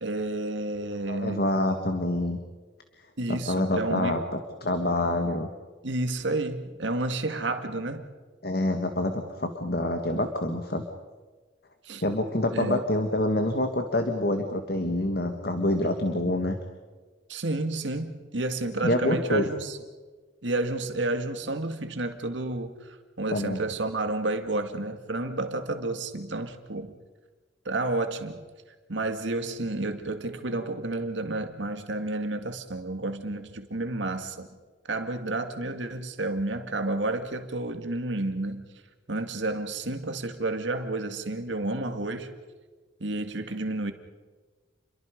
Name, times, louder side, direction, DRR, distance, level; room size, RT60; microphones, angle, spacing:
voice 1, 0.0-1.5 3.2-4.2 5.8-8.1 11.8-12.0 12.5-12.8 16.1-16.3 17.3-19.8 20.4-26.9 27.7-28.4 28.9-34.5 34.9-38.7 39.1-42.3 43.0-43.9, right 2 dB, 80° right, 7 dB, 2.1 m, -31 dB
voice 2, 1.1-2.4 3.3-4.2 4.6-5.5 8.4-10.8 12.0-16.6 18.8-19.5 23.3-23.6, left 1 dB, 55° left, 5 dB, 1.8 m, -26 dB
29.5 x 23.0 x 5.3 m, 1.4 s
head